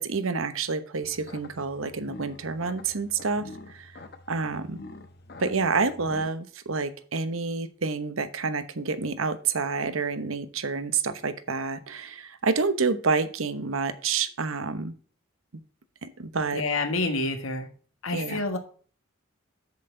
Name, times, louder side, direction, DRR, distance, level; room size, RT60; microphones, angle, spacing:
voice 1, 0.0-3.9 4.3-4.8 5.4-14.9 16.0-16.6 18.1-18.4, right 4 dB, 80° right, 12 dB, 1.0 m, -28 dB
sound 1, 1.0-6.3, left 2 dB, 50° left, 1.0 m, -46 dB
voice 2, 16.5-17.7 18.0-18.6, left 2 dB, 80° left, 5 dB, 1.6 m, -28 dB
7.9 x 7.4 x 3.8 m, 0.42 s
head